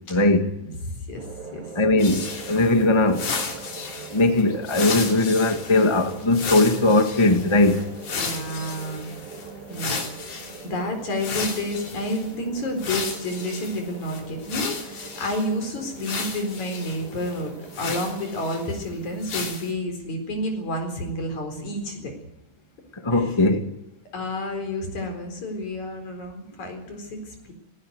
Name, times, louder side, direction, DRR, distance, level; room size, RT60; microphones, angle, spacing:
voice 1, 0.1-0.5 1.7-3.4 4.1-7.9 22.9-23.7, left 2 dB, 15° left, 1.1 m, -19 dB
voice 2, 0.6-1.3 1.5-1.7 8.2-9.1 9.7-22.1 23.1-23.3 24.1-27.5, left 1 dB, 70° left, 5.5 m, -30 dB
sound 1, 1.1-18.6, right 5 dB, 50° right, 3.3 m, -42 dB
sound 2, 2.0-10.7 11.2-12.3 12.8-15.5 16.0-18.8 19.2-19.7, left 5 dB, 90° left, 4.6 m, -34 dB
18.0 x 17.5 x 9.4 m
omnidirectional pair, 3.4 m